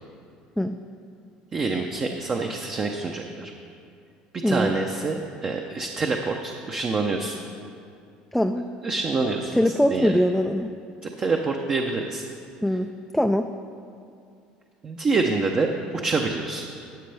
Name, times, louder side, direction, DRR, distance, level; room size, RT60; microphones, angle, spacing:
voice 1, 1.5-3.5 4.5-7.4 8.8-9.6 9.9-10.1 11.0-12.2 14.8-15.7 16.0-16.6, right 3 dB, 30° right, 2 dB, 0.7 m, -26 dB
voice 2, 4.4-4.7 8.3-8.7 9.5-10.7 12.6-13.5, left 1 dB, ahead, 5 dB, 0.3 m, -22 dB
13.0 x 8.5 x 3.4 m, 2.4 s
supercardioid pair, 110°, 3 cm